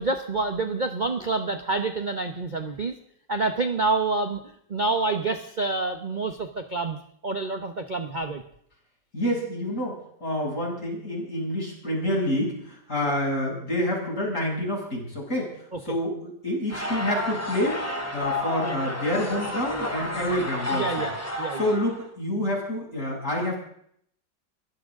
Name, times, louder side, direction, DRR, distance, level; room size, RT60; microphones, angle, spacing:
voice 1, 0.0-3.0 3.3-4.4 4.7-8.4 13.0-13.2 15.7-15.9 20.7-21.7, right 3 dB, 30° right, 6 dB, 1.1 m, -28 dB
voice 2, 9.1-15.5 15.9-17.8 18.1-21.1 21.6-23.6, left 1 dB, 45° left, -3 dB, 8.0 m, -28 dB
sound 1, 16.7-22.0, left 1 dB, 10° left, 2.3 m, -31 dB
23.0 x 16.5 x 3.8 m, 0.67 s
omnidirectional pair, 2.0 m